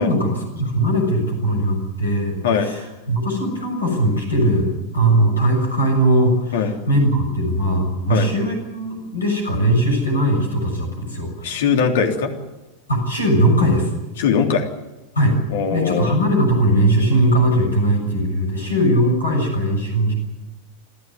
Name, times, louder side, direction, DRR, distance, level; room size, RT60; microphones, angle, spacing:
voice 1, 0.0-11.6 12.9-13.9 15.1-15.4 15.7-20.1, right 1 dB, 75° left, 2 dB, 6.9 m, -19 dB
voice 2, 11.4-12.3 14.2-14.7 15.5-16.2, left 6 dB, 55° left, 3 dB, 3.3 m, -20 dB
27.0 x 14.0 x 9.5 m, 1.0 s
figure-of-eight pair, 90°, 0 cm